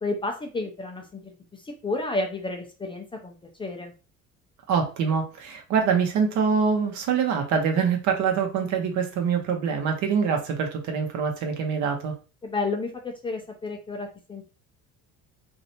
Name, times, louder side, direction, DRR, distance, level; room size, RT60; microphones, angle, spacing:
voice 1, 0.0-1.2 1.8-3.3 3.6-3.9 12.4-14.5, left 3 dB, 15° left, 3 dB, 0.4 m, -31 dB
voice 2, 4.7-12.1, right 6 dB, 65° right, 4 dB, 0.9 m, -24 dB
3.2 x 2.6 x 2.7 m, 0.34 s
cardioid pair, 140°, 32 cm